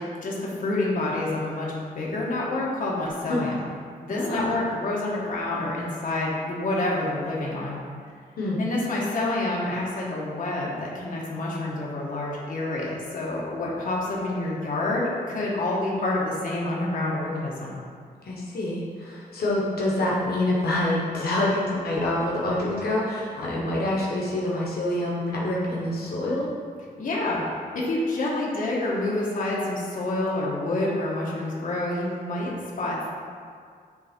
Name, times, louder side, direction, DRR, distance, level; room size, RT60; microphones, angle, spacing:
voice 1, 0.0-3.6 4.0-7.8 8.6-17.8 27.0-27.4 27.7-33.1, left 2 dB, 60° left, -4 dB, 1.2 m, -28 dB
voice 2, 4.1-4.5 8.4-8.6 18.2-26.5, left 1 dB, 80° left, -5 dB, 1.1 m, -26 dB
8.5 x 3.3 x 4.3 m, 2.1 s
wide cardioid pair, 135°, 16 cm